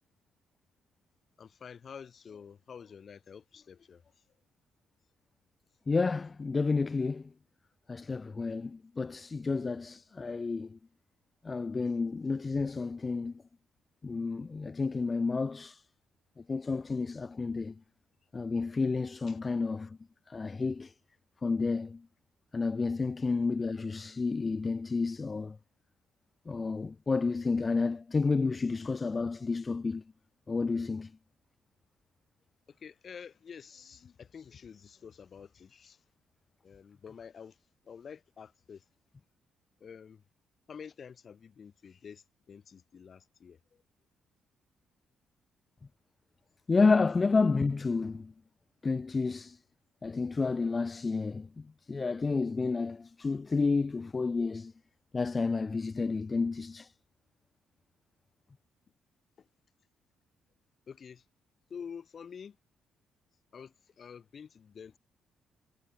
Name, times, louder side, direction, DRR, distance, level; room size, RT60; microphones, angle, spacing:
voice 1, 1.4-4.2 19.3-19.4 32.7-36.0 36.6-38.9 39.8-40.2 40.7-43.8 59.4-59.5 60.9-61.3 61.7-62.6 63.5-65.0, left 7 dB, 50° left, 3.9 m, -49 dB
voice 2, 5.9-7.3 7.9-10.8 11.4-13.3 14.0-15.8 16.5-17.7 18.3-20.0 20.3-20.9 21.4-22.0 22.5-25.6 26.5-30.0 30.5-31.1 46.7-48.3 48.8-49.6 50.0-51.5 51.9-54.7 55.1-56.9, left 4 dB, 30° left, 0.3 m, -30 dB
cardioid pair, 90°, 0 cm